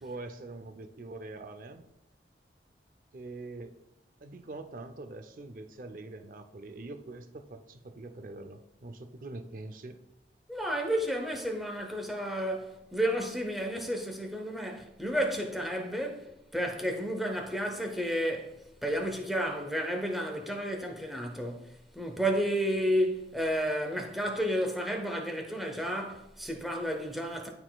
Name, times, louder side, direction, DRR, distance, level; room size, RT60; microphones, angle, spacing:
voice 1, 0.0-1.9 3.1-3.8 4.2-10.0, right 2 dB, 50° right, 0.5 m, -44 dB
voice 2, 10.5-18.5 18.8-27.5, equal, ahead, 0.7 m, -31 dB
11.5 x 3.9 x 2.3 m
head